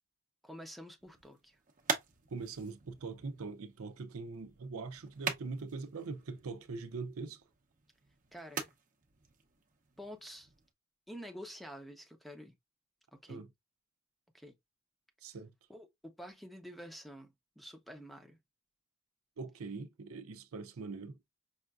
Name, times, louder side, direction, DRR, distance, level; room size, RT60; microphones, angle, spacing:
voice 1, 0.4-1.6 8.3-8.7 10.0-10.5 11.1-12.5 13.1-13.4 14.3-14.6 15.7-18.4, equal, ahead, 0.7 m, -49 dB
sound 1, 1.0-10.7, right 5 dB, 40° right, 0.7 m, -44 dB
voice 2, 2.3-7.4 13.3-13.5 15.2-15.5 19.4-21.2, right 4 dB, 90° right, 0.6 m, -42 dB
5.4 x 2.5 x 2.3 m
head